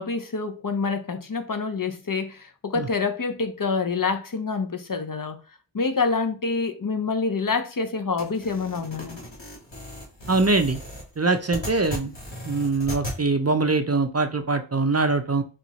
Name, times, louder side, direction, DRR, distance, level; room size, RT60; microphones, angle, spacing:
voice 1, 0.0-5.4 5.7-9.2, left 4 dB, 45° left, 0.6 m, -27 dB
sound 1, 8.2-13.2, left 1 dB, 70° left, 1.8 m, -37 dB
voice 2, 10.3-10.8 11.2-12.1 12.4-15.4, right 3 dB, 35° right, 0.5 m, -23 dB
4.4 x 2.4 x 4.0 m
wide cardioid pair, 45°, 46 cm